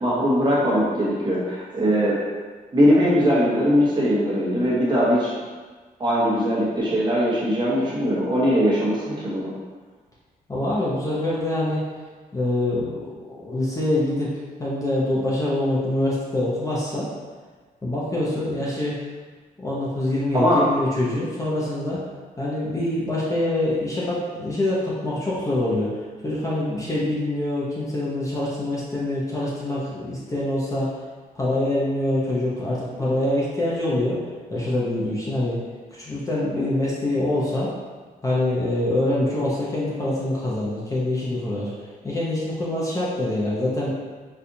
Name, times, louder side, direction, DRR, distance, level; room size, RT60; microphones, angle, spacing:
voice 1, 0.0-2.2 2.7-5.3 6.0-9.5 20.3-20.6 36.5-36.6, equal, 30° right, -7 dB, 1.0 m, -20 dB
voice 2, 10.5-11.8 12.3-14.3 14.6-17.1 17.8-19.0 19.6-22.0 22.4-31.0 31.4-34.2 34.5-35.6 35.9-37.7 38.2-43.9, left 1 dB, 20° left, -7 dB, 0.6 m, -25 dB
4.2 x 2.4 x 2.6 m, 1.4 s
cardioid pair, 125°, 16 cm